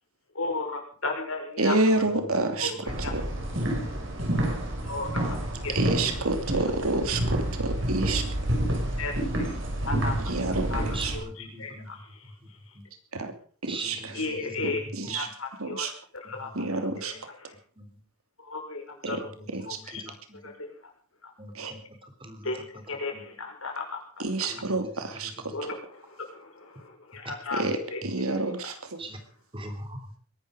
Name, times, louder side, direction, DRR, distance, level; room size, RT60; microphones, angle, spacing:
voice 1, 0.3-2.0 2.6-2.8 3.0-3.1 4.8-5.1 5.6-5.7 9.0-9.1 9.8-10.1 10.7-10.8 11.1-12.2 14.1-15.9 16.3-16.5 17.0-17.5 18.4-19.3 19.7-20.0 20.4-20.7 21.2-21.3 22.4-22.6 22.9-24.0 24.4-24.5 25.5-27.6 27.9-28.0 28.3-28.7, left 3 dB, 75° left, 2 dB, 5.8 m, -35 dB
voice 2, 1.6-2.7 3.0-3.3 5.7-8.2 10.2-11.2 13.1-13.3 13.6-14.1 14.6-15.3 15.6-15.9 16.5-17.1 19.0-19.2 19.5-19.8 21.5-21.7 24.2-25.5 27.5-29.0, right 2 dB, 85° right, 7 dB, 2.9 m, -28 dB
sound 1, 2.9-11.2, right 1 dB, 60° right, 5.6 m, -29 dB
voice 3, 10.9-11.9 12.7-12.8 13.7-14.8 15.1-15.2 16.4-16.5 16.9-17.0 17.8-17.9 19.1-19.6 20.0-20.5 21.4-21.8 22.2-22.5 23.1-23.2 24.5-24.7 29.0-29.2 29.5-30.2, right 2 dB, 25° right, 7 dB, 3.1 m, -41 dB
21.5 x 12.0 x 5.0 m, 0.43 s
head